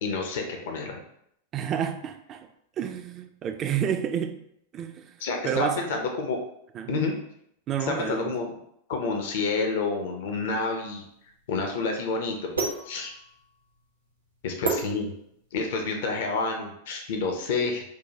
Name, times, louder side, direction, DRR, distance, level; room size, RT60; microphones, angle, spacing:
voice 1, 0.0-1.0 5.2-6.4 6.9-7.1 7.9-8.5 8.9-11.0 11.5-12.5 12.8-13.1 14.4-15.1 15.5-17.8, left 4 dB, 55° left, 3 dB, 0.5 m, -29 dB
voice 2, 1.5-2.5 2.8-4.4 4.7-5.8 6.7-7.0 7.7-8.3, right 8 dB, 30° right, 8 dB, 0.3 m, -30 dB
sound 1, 10.5-15.7, right 3 dB, 80° right, 0.7 m, -34 dB
4.6 x 2.1 x 2.7 m, 0.74 s
figure-of-eight pair, 90°, 0 cm